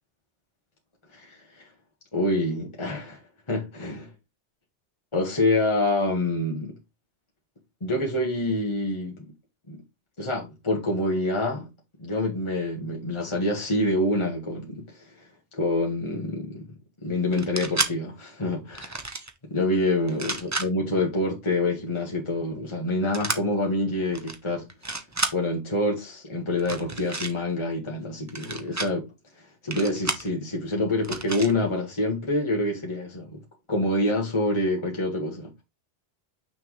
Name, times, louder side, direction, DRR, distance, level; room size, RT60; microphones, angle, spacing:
voice 1, 1.1-1.6 2.1-3.2 3.5-4.1 5.1-6.8 7.8-9.3 9.7-9.8 10.2-11.7 12.0-15.3 15.5-16.7 17.0-19.0 19.4-24.7 25.3-29.1 29.6-33.4 33.7-35.5, left 1 dB, 25° left, 1.6 m, -26 dB
sound 1, 17.3-17.9 18.7-19.3 20.1-20.7 23.1-23.4 24.1-24.4 24.7-25.3 26.6-27.3 28.3-28.9 29.7-30.3 31.0-31.5, right 2 dB, 20° right, 0.7 m, -30 dB
6.2 x 5.7 x 3.2 m
omnidirectional pair, 1.2 m